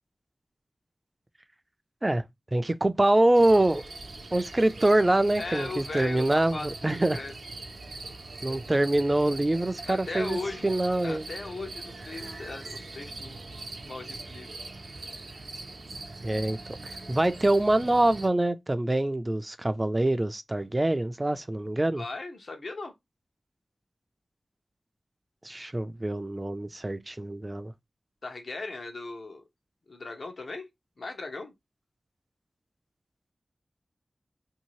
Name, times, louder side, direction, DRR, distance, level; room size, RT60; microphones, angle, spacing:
voice 1, 2.5-3.8 4.3-7.2 8.4-11.3 16.2-16.6 16.8-22.0 25.4-27.7, right 1 dB, 25° right, 0.4 m, -25 dB
sound 1, 3.3-18.3, right 2 dB, 80° right, 0.6 m, -42 dB
voice 2, 5.4-7.3 9.9-10.7 11.0-13.5 13.8-14.5 21.9-22.9 28.2-29.4 29.9-30.7 31.0-31.5, left 3 dB, 75° left, 0.8 m, -38 dB
2.7 x 2.7 x 3.0 m
wide cardioid pair, 80°, 0 cm